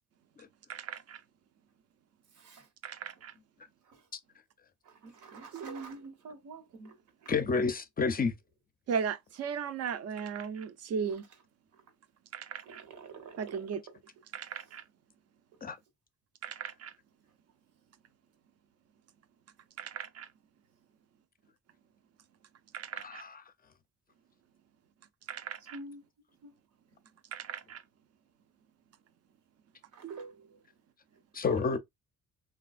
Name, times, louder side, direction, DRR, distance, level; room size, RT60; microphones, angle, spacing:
voice 1, 0.7-1.2 2.8-3.3 5.5-5.8 8.9-11.3 12.3-12.9 13.4-13.8 14.3-14.8 16.4-16.9 19.8-20.3 22.7-23.2 25.3-25.8 27.3-27.8 30.0-30.6, right 7 dB, 55° right, 0.5 m, -37 dB
voice 2, 4.9-7.0 12.7-13.6 25.7-26.0 26.4-26.5 29.9-30.2, right 3 dB, 80° right, 1.1 m, -47 dB
voice 3, 7.3-8.3 15.6-15.8 23.0-23.4 31.3-31.8, left 4 dB, 30° left, 0.5 m, -30 dB
3.2 x 2.3 x 2.4 m
cardioid pair, 90°, 30 cm